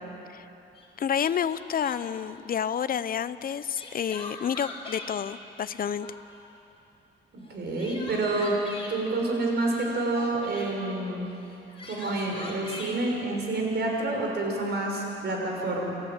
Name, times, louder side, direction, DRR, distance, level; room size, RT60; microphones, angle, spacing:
Crying sobbing, 0.8-0.9 1.2-2.2 3.5-5.1 5.6-6.4 7.5-9.0 9.7-10.7 11.5-13.0, left 3 dB, 30° left, 6.2 m, -42 dB
voice 1, 1.0-6.1, left 8 dB, 45° left, 15 dB, 0.8 m, -29 dB
voice 2, 7.5-8.6 8.9-11.3 11.8-15.9, right 2 dB, 55° right, 0 dB, 6.2 m, -28 dB
29.0 x 14.5 x 8.9 m, 2.9 s
cardioid pair, 90°, 20 cm